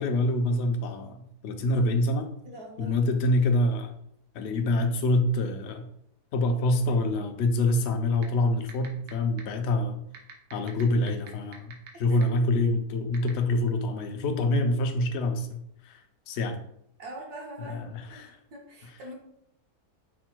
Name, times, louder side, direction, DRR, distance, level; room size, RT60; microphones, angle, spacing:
voice 1, 0.0-2.3 2.8-4.0 4.3-5.9 6.3-10.0 10.5-16.6 17.6-18.4, left 2 dB, 65° left, 6 dB, 0.6 m, -26 dB
voice 2, 2.4-3.0 12.1-12.5 17.0-19.1, right 1 dB, 70° right, -1 dB, 1.6 m, -43 dB
sound 1, 8.2-8.3 8.7-9.1 9.4-9.5 10.1-11.9 12.2-12.3 13.1-13.3, right 9 dB, 85° right, 1.4 m, -43 dB
5.2 x 2.2 x 4.3 m, 0.73 s
omnidirectional pair, 1.7 m